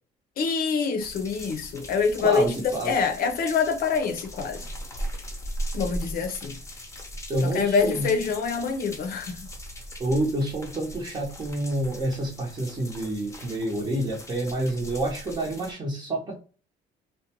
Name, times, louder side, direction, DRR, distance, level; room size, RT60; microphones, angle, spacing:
voice 1, 0.4-4.6 5.7-6.6 7.4-9.4, left 5 dB, 60° left, 0.6 m, -25 dB
sound 1, 1.0-15.7, equal, 15° left, 0.7 m, -39 dB
voice 2, 2.2-2.9 7.3-8.1 10.0-16.3, right 1 dB, 25° right, 0.8 m, -28 dB
2.5 x 2.1 x 2.8 m
cardioid pair, 110°, 17 cm